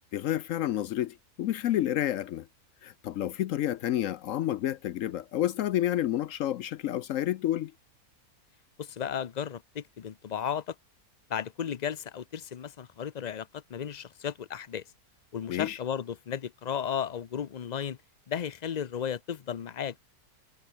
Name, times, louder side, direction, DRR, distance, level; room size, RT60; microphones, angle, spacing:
voice 1, 0.1-2.5 2.8-7.7 15.5-15.8, left 12 dB, 70° left, 0.9 m, -29 dB
voice 2, 8.8-10.7 11.3-14.8 15.3-18.0 18.3-20.0, left 8 dB, 55° left, 0.5 m, -34 dB
omnidirectional pair, 1.6 m